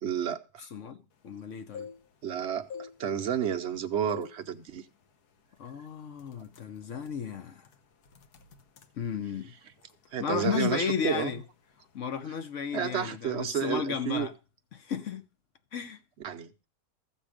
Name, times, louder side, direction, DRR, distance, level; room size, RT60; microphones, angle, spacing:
voice 1, 0.0-0.7 2.2-4.8 10.1-11.4 12.7-14.3 16.2-16.5, right 9 dB, 55° right, 0.8 m, -31 dB
voice 2, 0.7-1.9 5.6-7.6 9.0-9.5 10.2-11.4 11.9-14.3 14.7-15.2 15.7-16.0, left 7 dB, 60° left, 1.0 m, -33 dB
sound 1, 1.5-2.3 2.6-3.7 4.1-4.4 4.8-5.0 5.6-5.8 6.1-10.0 10.3-10.8 11.1-11.4 11.7-12.0, left 6 dB, 80° left, 1.5 m, -45 dB
14.5 x 7.3 x 5.0 m
omnidirectional pair, 1.7 m